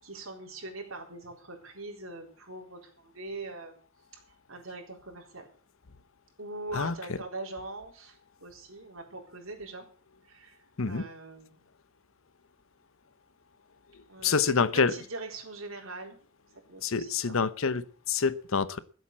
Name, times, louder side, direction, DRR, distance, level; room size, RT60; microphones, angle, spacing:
voice 1, 0.0-3.8 4.1-4.2 4.5-5.5 6.4-9.9 10.3-11.6 14.1-16.2 16.7-17.4, right 2 dB, 75° right, 1 dB, 4.2 m, -42 dB
voice 2, 6.7-7.2 10.8-11.0 13.9-14.9 16.8-18.8, left 5 dB, 70° left, 16 dB, 0.8 m, -27 dB
15.0 x 8.1 x 7.4 m, 0.43 s
head